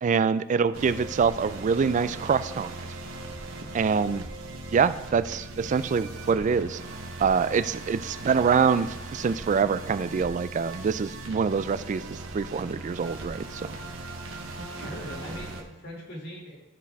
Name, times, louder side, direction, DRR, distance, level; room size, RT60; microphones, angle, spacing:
voice 1, 0.0-2.9 3.7-4.3 4.7-6.8 7.2-13.7, right 6 dB, 40° right, 13 dB, 0.3 m, -25 dB
sound 1, 0.7-15.6, right 2 dB, 80° right, 1.1 m, -39 dB
voice 2, 8.1-8.4 14.7-16.6, equal, 55° left, -2 dB, 2.4 m, -41 dB
13.5 x 4.6 x 3.5 m, 0.97 s
head